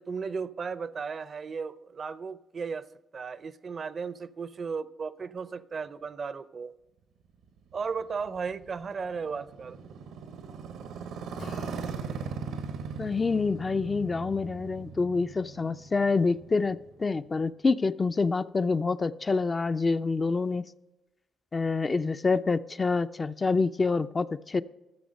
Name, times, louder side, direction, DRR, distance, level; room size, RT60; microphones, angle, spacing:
voice 1, 0.0-2.9 3.1-6.7 7.7-9.8, right 5 dB, 50° right, 0.6 m, -35 dB
Motorcycle, 7.4-17.4, right 5 dB, 85° right, 1.0 m, -40 dB
Acoustic guitar / Strum, 11.4-15.7, left 5 dB, 75° left, 2.0 m, -52 dB
voice 2, 13.0-20.7 21.5-24.6, left 4 dB, 35° left, 0.4 m, -27 dB
14.0 x 7.1 x 5.3 m
supercardioid pair, 65°, 0 cm